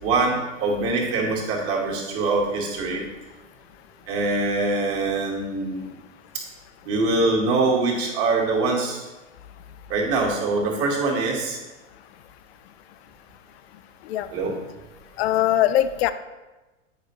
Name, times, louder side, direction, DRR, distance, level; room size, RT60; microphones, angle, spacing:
voice 1, 0.0-3.0 4.1-5.9 6.9-9.0 9.9-11.6 14.3-14.6, right 3 dB, 40° right, -2 dB, 1.9 m, -23 dB
voice 2, 15.2-16.1, left 12 dB, 55° left, 13 dB, 0.5 m, -21 dB
8.8 x 5.0 x 3.1 m, 1.1 s
hypercardioid pair, 105°, 38 cm